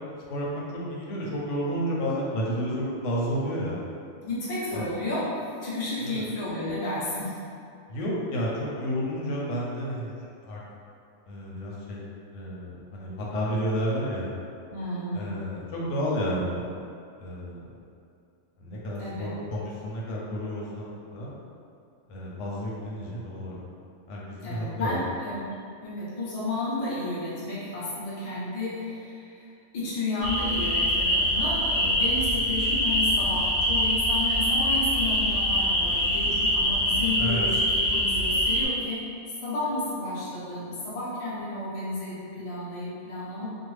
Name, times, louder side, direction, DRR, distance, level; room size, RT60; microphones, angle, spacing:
voice 1, 0.3-3.8 4.7-4.9 6.0-6.2 7.9-10.6 11.3-12.0 12.3-14.3 15.1-16.7 17.2-17.6 18.6-21.4 22.1-23.6 24.1-25.0 37.2-37.5, equal, 90° left, -5 dB, 0.9 m, -31 dB
voice 2, 4.2-5.3 5.6-7.4 14.7-15.3 19.0-19.3 24.4-25.5 25.8-39.1 39.4-43.5, left 2 dB, 35° left, -9 dB, 0.6 m, -32 dB
sound 1, 30.2-38.7, equal, 5° left, 0.9 m, -24 dB
2.6 x 2.0 x 3.1 m, 2.4 s
omnidirectional pair, 1.2 m